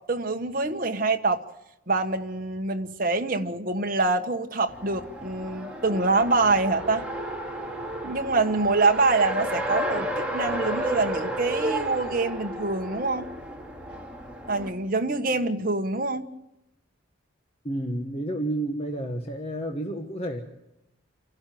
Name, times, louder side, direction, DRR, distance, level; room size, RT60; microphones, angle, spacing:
voice 1, 0.0-1.4 1.9-7.0 8.0-13.3 14.5-16.3, right 3 dB, 45° right, 1.4 m, -25 dB
Race car auto racing, 4.7-14.7, right 1 dB, 5° right, 2.4 m, -32 dB
voice 2, 17.6-20.4, right 1 dB, 30° left, 1.4 m, -30 dB
29.0 x 12.0 x 9.4 m
head